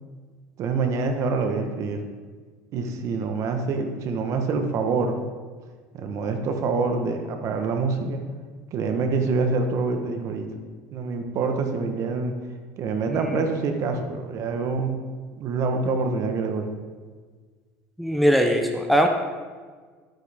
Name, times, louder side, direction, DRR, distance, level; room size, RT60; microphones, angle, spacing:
voice 1, 0.6-2.0 2.7-5.2 5.9-8.2 8.7-10.5 10.9-12.3 12.8-15.0 15.4-16.7, right 4 dB, 50° right, 5 dB, 1.3 m, -26 dB
voice 2, 18.0-19.1, equal, ahead, 3 dB, 0.7 m, -21 dB
12.0 x 9.2 x 3.6 m, 1.5 s
cardioid pair, 125°, 7 cm